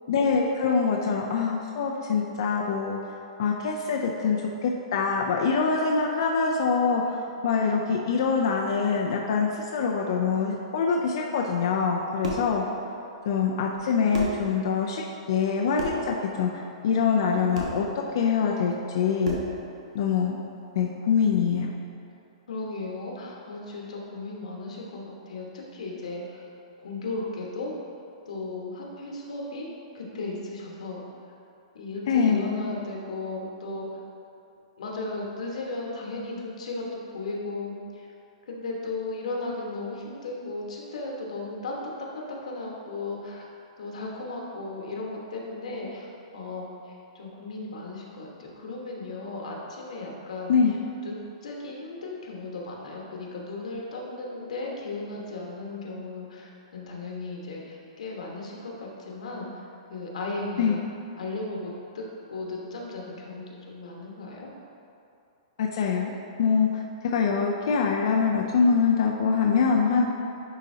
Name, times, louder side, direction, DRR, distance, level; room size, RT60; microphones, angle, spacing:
voice 1, 0.1-3.0 3.4-12.6 13.3-16.5 16.8-19.4 19.9-20.4 20.8-21.7 32.1-32.7 50.5-50.8 60.6-60.8 65.6-66.1 66.4-70.1, left 5 dB, 45° left, 0 dB, 0.4 m, -24 dB
sound 1, 11.9-12.6 13.7-13.8 14.1-14.5 15.7-16.1 17.5-17.8 19.2-19.6, right 1 dB, 75° right, 1.2 m, -32 dB
voice 2, 22.5-26.4 26.8-27.7 28.3-29.7 29.9-31.0 31.7-34.0 34.8-38.1 38.5-43.5 43.8-46.1 46.3-50.5 51.0-59.5 59.9-60.8 61.2-64.5, left 2 dB, 90° left, -2 dB, 1.3 m, -36 dB
10.0 x 4.0 x 2.8 m, 2.6 s
hypercardioid pair, 180°, 4 cm